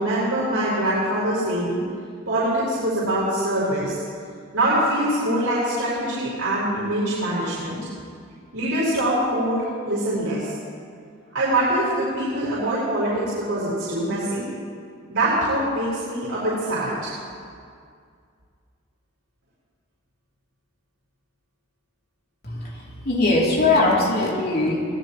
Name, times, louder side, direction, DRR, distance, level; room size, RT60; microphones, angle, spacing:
voice 1, 0.0-1.8 2.3-4.1 4.5-7.8 8.5-10.5 11.3-14.5 15.1-17.1, right 1 dB, 85° right, -9 dB, 5.0 m, -24 dB
voice 2, 23.0-24.9, left 2 dB, 50° left, -3 dB, 3.0 m, -20 dB
25.5 x 18.0 x 3.1 m, 2.2 s
head